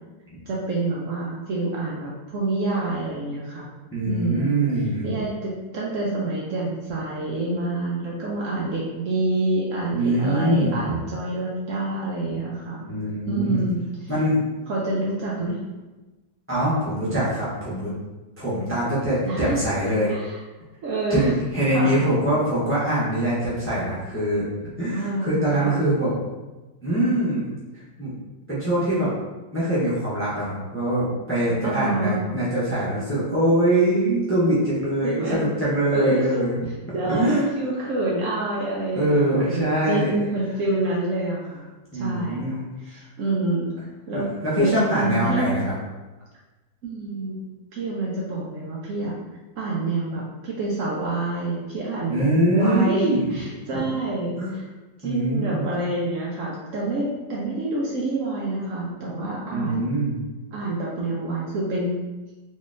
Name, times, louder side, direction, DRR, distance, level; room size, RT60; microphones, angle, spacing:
voice 1, 0.5-3.7 4.1-4.6 5.0-12.9 13.3-14.1 14.7-15.6 19.3-19.6 20.1-20.4 20.8-21.3 21.7-22.0 24.9-25.8 31.6-32.2 35.0-35.4 35.9-36.4 36.9-41.6 41.9-43.7 44.1-44.3 44.6-45.5 46.8-47.4 47.7-49.2 49.6-54.6 55.0-60.0 60.5-62.0, right 2 dB, 65° right, -4 dB, 0.8 m, -27 dB
voice 2, 3.9-5.1 9.9-11.0 12.9-13.6 14.1-14.4 16.5-17.9 18.4-20.1 21.1-24.5 24.8-26.1 26.8-27.5 28.0-28.1 28.5-29.1 29.5-36.6 37.1-37.4 38.9-40.2 41.9-42.6 42.9-43.0 44.1-45.7 52.1-53.4 53.7-53.8 54.4-54.5 55.0-55.6 59.5-60.2, right 1 dB, 10° left, -9 dB, 0.6 m, -23 dB
3.9 x 3.1 x 2.5 m, 1.1 s
omnidirectional pair, 1.7 m